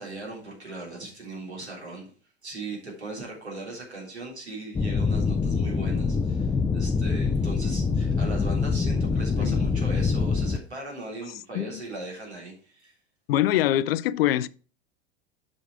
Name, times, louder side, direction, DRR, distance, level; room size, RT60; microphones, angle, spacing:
voice 1, 0.0-2.1 2.4-13.0, right 2 dB, 85° right, 3.5 m, -39 dB
sound 1, 4.7-10.6, left 4 dB, 10° left, 0.4 m, -25 dB
voice 2, 13.3-14.5, left 13 dB, 65° left, 0.5 m, -23 dB
7.6 x 5.2 x 4.8 m
figure-of-eight pair, 85°, 32 cm